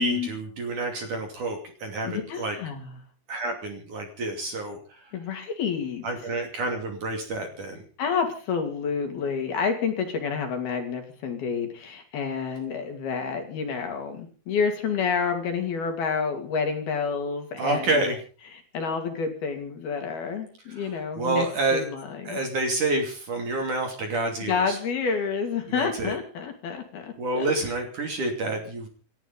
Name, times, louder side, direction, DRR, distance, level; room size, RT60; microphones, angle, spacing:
voice 1, 0.0-2.6 3.3-5.1 6.0-7.8 17.6-18.2 20.8-21.9 22.3-24.8 25.7-26.1 27.2-28.9, right 2 dB, 45° right, 4 dB, 3.6 m, -28 dB
voice 2, 2.0-3.0 5.1-6.1 8.0-18.1 18.5-21.5 21.7-22.4 24.5-27.5, left 6 dB, 55° left, 5 dB, 4.1 m, -29 dB
28.0 x 12.0 x 4.0 m, 0.39 s
omnidirectional pair, 5.8 m